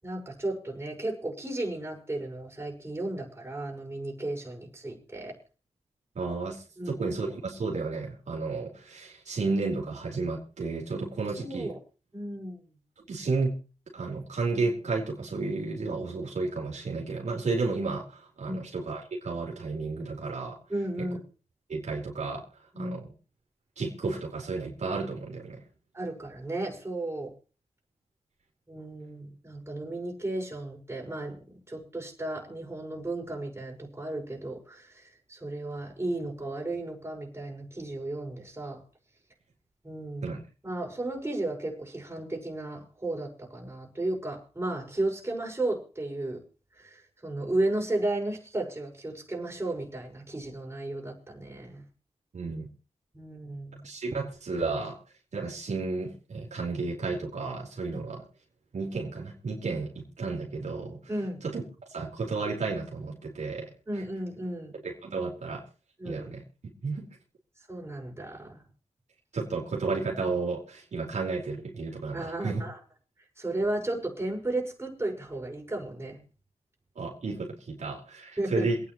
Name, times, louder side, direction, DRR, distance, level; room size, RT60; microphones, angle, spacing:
voice 1, 0.0-5.4 6.8-6.9 11.4-11.8 12.1-12.8 18.5-18.6 20.7-21.2 22.7-23.0 25.9-27.3 28.7-38.8 39.8-40.4 40.6-46.4 46.8-51.8 53.1-53.8 61.1-61.4 63.9-64.7 66.0-66.3 67.7-68.6 72.1-72.7 73.4-76.2 78.4-78.7, right 2 dB, 20° right, -1 dB, 5.9 m, -34 dB
voice 2, 6.1-11.7 13.1-13.6 13.9-20.6 21.7-22.4 22.8-23.1 23.8-25.6 40.2-40.4 52.3-52.7 53.8-55.0 55.3-58.2 58.7-61.0 61.4-61.6 61.9-63.7 64.8-65.7 66.0-66.4 66.8-67.1 69.3-72.6 77.0-78.8, right 3 dB, 75° right, -2 dB, 4.1 m, -32 dB
27.5 x 9.7 x 3.1 m, 0.34 s
wide cardioid pair, 75°, 12 cm